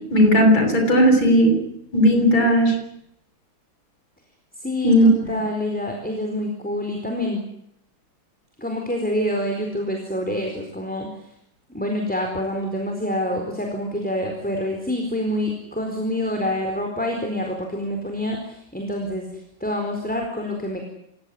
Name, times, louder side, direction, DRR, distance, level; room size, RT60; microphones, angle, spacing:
voice 1, 0.1-1.6 1.9-2.7 4.8-5.1, equal, 75° left, 3 dB, 7.7 m, -15 dB
voice 2, 4.6-7.4 8.6-11.1 11.7-19.3 19.6-20.8, left 1 dB, 5° left, 2 dB, 4.2 m, -27 dB
28.0 x 16.5 x 9.8 m, 0.77 s
omnidirectional pair, 2.1 m